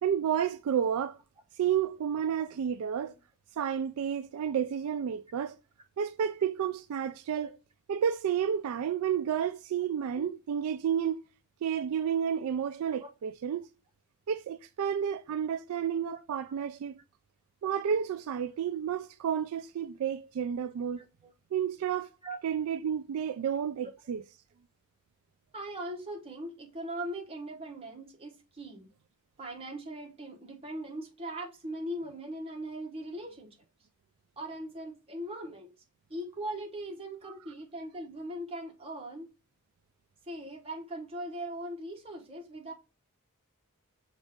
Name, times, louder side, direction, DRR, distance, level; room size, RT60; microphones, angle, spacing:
voice 1, 0.0-1.2 1.6-3.1 3.6-5.5 6.0-7.5 7.9-11.2 11.6-13.6 14.3-17.0 17.6-21.0 21.5-22.1 22.4-24.2, right 8 dB, 75° right, 0.3 m, -31 dB
voice 2, 21.0-21.3 22.2-22.4 25.5-28.9 29.4-33.6 34.4-35.7 36.1-39.3 40.3-42.7, right 1 dB, 25° right, 1.0 m, -40 dB
6.2 x 2.4 x 3.5 m
head